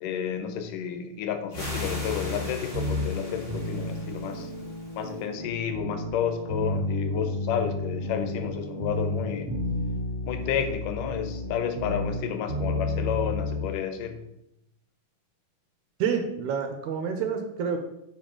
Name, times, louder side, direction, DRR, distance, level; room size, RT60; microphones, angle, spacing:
voice 1, 0.0-4.5 5.0-9.5 10.3-14.2, left 8 dB, 80° left, 7 dB, 2.3 m, -31 dB
sound 1, 1.5-5.2, left 1 dB, 25° left, 1.2 m, -40 dB
sound 2, 1.5-13.7, left 2 dB, 25° right, 2.7 m, -32 dB
voice 2, 16.0-17.8, right 6 dB, 75° right, 5 dB, 1.9 m, -28 dB
9.1 x 4.8 x 3.7 m, 0.83 s
omnidirectional pair, 3.8 m